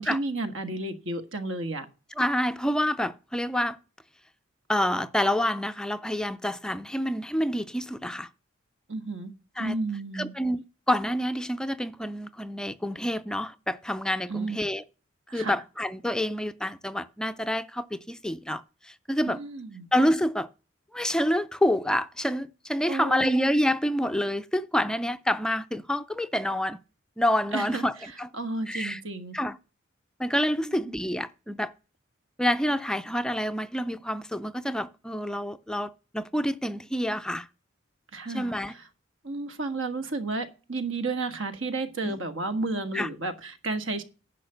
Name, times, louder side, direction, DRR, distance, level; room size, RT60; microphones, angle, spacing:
voice 1, 0.0-1.8 8.9-9.3 9.6-10.3 14.3-14.6 15.3-15.5 19.2-19.9 22.9-23.4 27.5-27.8 28.3-29.4 30.6-30.8 38.1-38.8 39.2-44.0, right 3 dB, 75° right, 1.7 m, -32 dB
voice 2, 2.2-3.8 4.7-8.3 9.6-9.7 10.1-14.8 15.3-19.4 19.9-20.5 20.9-26.8 27.2-28.3 28.7-29.0 29.3-29.6 30.2-31.7 32.4-37.5 38.3-38.7 42.0-42.2 42.9-43.1, equal, 5° left, 0.4 m, -28 dB
10.5 x 5.7 x 6.8 m
head